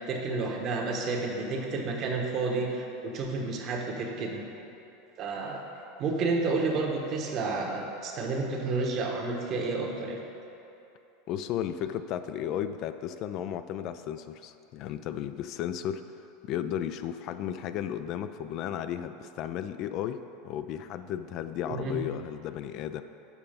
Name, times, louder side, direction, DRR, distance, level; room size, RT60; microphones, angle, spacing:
voice 1, 0.1-4.4 5.2-5.6 6.0-10.2 21.7-21.9, right 3 dB, 45° right, 1 dB, 1.2 m, -30 dB
voice 2, 11.3-16.0 16.4-23.0, left 10 dB, 50° left, 10 dB, 0.3 m, -34 dB
7.1 x 5.5 x 5.1 m, 2.8 s
hypercardioid pair, 105°, 0 cm